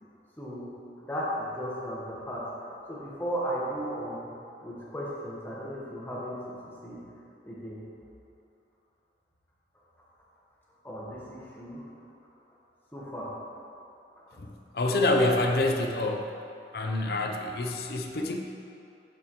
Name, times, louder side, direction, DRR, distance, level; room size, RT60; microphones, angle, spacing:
voice 1, 0.4-0.7 1.0-4.3 4.6-6.6 6.8-7.0 7.4-7.8 10.8-11.8 12.9-13.3 14.3-14.4 17.0-17.1, equal, 10° left, -6 dB, 1.3 m, -35 dB
voice 2, 14.7-16.3 16.7-18.4, left 2 dB, 60° left, 3 dB, 0.6 m, -26 dB
8.2 x 7.0 x 3.1 m, 2.7 s
head